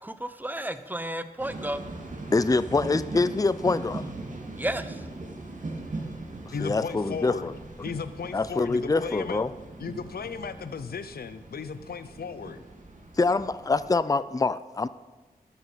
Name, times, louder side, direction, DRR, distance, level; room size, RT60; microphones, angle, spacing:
voice 1, 0.0-1.8 4.6-5.0, right 1 dB, 10° right, 11 dB, 1.0 m, -32 dB
sound 1, 1.4-13.9, right 2 dB, 50° right, 2.2 m, -40 dB
voice 2, 2.3-4.0 6.6-7.5 8.3-9.5 13.2-14.9, left 3 dB, 20° left, 15 dB, 0.5 m, -25 dB
voice 3, 6.5-7.5 7.8-9.4 9.8-12.6, left 6 dB, 75° left, 12 dB, 0.6 m, -36 dB
12.5 x 9.0 x 5.7 m, 1.3 s
cardioid pair, 50°, 16 cm